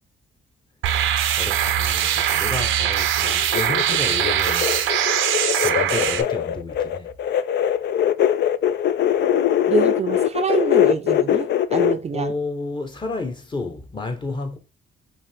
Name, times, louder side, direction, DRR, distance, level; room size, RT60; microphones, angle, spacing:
sound 1, 0.8-6.2, right 10 dB, 85° right, 0.6 m, -21 dB
voice 1, 1.4-4.8 5.6-7.1 12.1-14.6, left 2 dB, 25° left, 0.9 m, -31 dB
sound 2, 3.2-11.9, left 10 dB, 60° left, 0.4 m, -21 dB
voice 2, 9.7-12.3, right 6 dB, 30° right, 0.5 m, -26 dB
5.1 x 2.6 x 3.4 m
cardioid pair, 90°, 20 cm